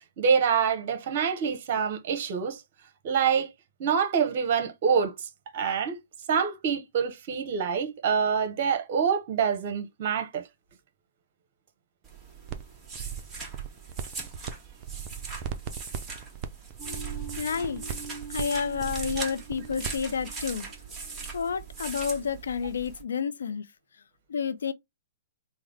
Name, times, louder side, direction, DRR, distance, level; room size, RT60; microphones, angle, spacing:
voice 1, 0.2-2.6 3.0-3.5 3.8-5.1 5.5-6.0 6.3-10.4 19.2-19.3, right 6 dB, 50° right, 0.9 m, -26 dB
sound 1, 12.0-23.0, right 4 dB, 15° right, 1.4 m, -41 dB
sound 2, 12.5-12.6 12.9-14.5 14.8-20.0, right 8 dB, 35° right, 0.5 m, -37 dB
sound 3, 16.8-21.8, right 4 dB, 40° left, 1.1 m, -44 dB
voice 2, 17.4-17.8 18.3-20.7 21.3-23.6 24.3-24.7, left 6 dB, 75° left, 0.5 m, -30 dB
3.6 x 2.1 x 3.3 m
hypercardioid pair, 130°, 0 cm